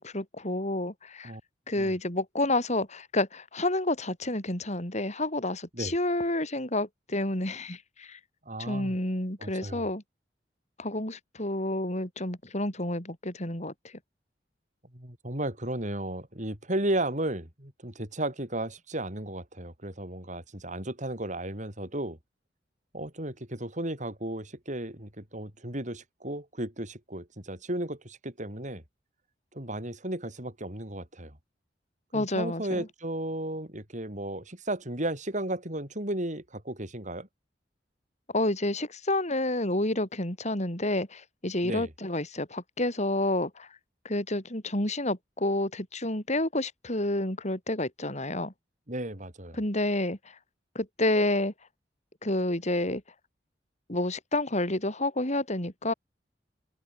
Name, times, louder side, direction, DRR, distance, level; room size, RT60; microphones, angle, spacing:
voice 1, 0.0-1.3 1.7-8.2 8.6-10.0 10.8-13.7 32.1-32.9 38.3-43.7 44.0-48.5 49.6-50.3 50.7-51.5 52.2-53.0 53.9-55.9, left 1 dB, 40° left, 7.9 m, -29 dB
voice 2, 8.5-9.0 9.4-9.9 14.9-22.2 22.9-28.8 29.5-31.3 32.1-37.3 41.6-41.9 48.9-49.6, right 1 dB, 45° right, 7.0 m, -34 dB
open air
head